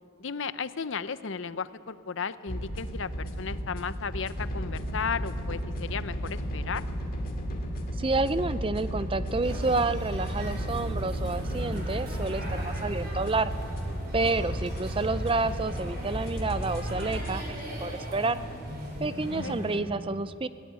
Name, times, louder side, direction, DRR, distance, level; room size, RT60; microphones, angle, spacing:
voice 1, 0.2-6.8 19.0-19.6, left 6 dB, 60° left, 14 dB, 0.7 m, -35 dB
sound 1, 2.5-17.4, equal, 40° left, 2.5 m, -34 dB
voice 2, 8.0-13.5 14.1-18.4 19.0-20.5, right 3 dB, 25° right, 14 dB, 0.5 m, -29 dB
sound 2, 9.4-19.8, equal, 45° right, 5.1 m, -37 dB
19.5 x 18.5 x 9.5 m, 2.6 s
head